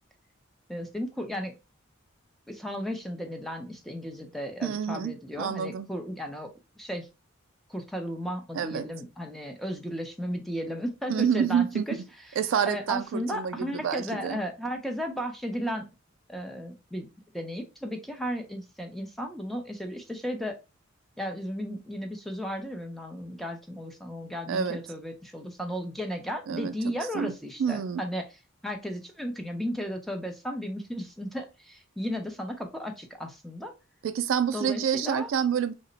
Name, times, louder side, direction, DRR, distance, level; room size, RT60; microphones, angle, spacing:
voice 1, 0.7-1.5 2.5-6.5 6.8-7.1 7.7-12.0 12.6-15.8 16.3-17.1 17.3-20.6 21.2-28.2 28.6-33.7 34.5-35.3, equal, ahead, 0.5 m, -34 dB
voice 2, 4.6-5.9 8.5-8.9 11.1-12.0 12.4-14.4 24.5-24.8 26.5-26.7 27.1-28.0 34.0-35.7, right 7 dB, 70° right, 0.3 m, -28 dB
2.9 x 2.1 x 3.8 m
head